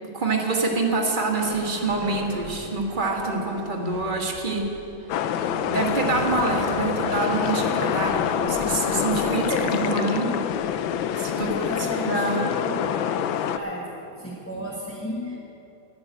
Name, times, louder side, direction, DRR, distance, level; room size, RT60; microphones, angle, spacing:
voice 1, 0.0-4.7 5.7-10.3 11.1-12.5, right 3 dB, 25° right, 0 dB, 1.6 m, -26 dB
sound 1, 0.6-8.7 8.9-9.2 9.6-9.9 10.4-11.5, equal, 60° left, 4.9 m, -41 dB
sound 2, 5.1-13.6, left 9 dB, 80° left, 1.4 m, -26 dB
voice 2, 8.9-10.0 11.3-12.7 13.5-13.9 14.2-15.4, left 1 dB, 10° left, -5 dB, 1.0 m, -33 dB
11.0 x 10.5 x 8.1 m, 2.9 s
omnidirectional pair, 2.1 m